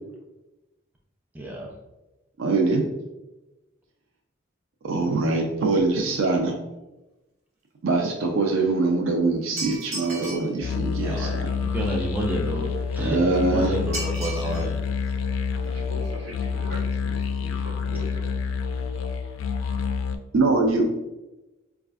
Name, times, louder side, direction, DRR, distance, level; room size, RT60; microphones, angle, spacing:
voice 1, 1.3-1.7 11.0-14.8 18.8-19.3, right 1 dB, 10° right, -1 dB, 0.3 m, -31 dB
voice 2, 2.4-2.8 4.8-6.5 7.8-11.4 13.0-13.7 20.3-20.9, right 3 dB, 90° right, 1 dB, 0.4 m, -23 dB
sound 1, 9.6-10.6 13.9-14.7 15.0-15.1 16.0-16.1 16.4-16.5 16.8-17.0 17.2-17.3, right 2 dB, 35° right, 1.0 m, -35 dB
sound 2, 10.6-20.2, left 5 dB, 80° left, 0.3 m, -28 dB
voice 3, 15.6-18.3, equal, 65° right, -5 dB, 1.2 m, -41 dB
4.1 x 2.3 x 2.3 m, 1.0 s
head